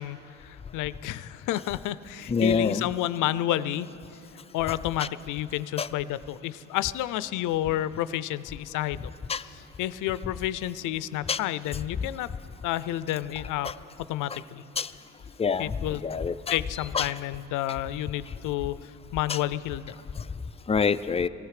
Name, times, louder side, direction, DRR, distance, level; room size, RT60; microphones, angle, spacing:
voice 1, 0.0-3.9 4.5-9.1 9.4-12.3 12.6-13.7 14.1-14.6 15.6-16.1 16.5-19.9, left 13 dB, 85° left, 16 dB, 0.5 m, -30 dB
voice 2, 2.3-2.8 5.8-5.9 9.3-9.4 11.3-11.4 13.6-13.7 14.8-14.9 15.4-15.7 16.0-16.6 16.9-17.1 19.3-19.4 20.7-21.3, left 5 dB, 20° left, 12 dB, 0.4 m, -25 dB
19.0 x 15.5 x 4.9 m, 3.0 s
cardioid pair, 90°, 30 cm